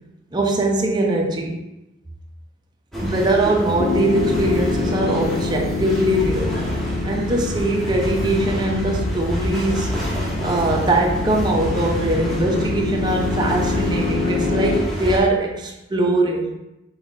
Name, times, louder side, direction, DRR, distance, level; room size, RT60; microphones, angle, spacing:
voice 1, 0.3-1.6 3.0-6.6 7.0-9.9 10.4-16.5, right 1 dB, 20° right, 1 dB, 0.4 m, -21 dB
sound 1, 2.9-15.2, equal, ahead, 0.8 m, -27 dB
Piano, 3.8-14.8, left 4 dB, 70° left, 0.6 m, -27 dB
3.5 x 3.0 x 3.9 m, 0.94 s
head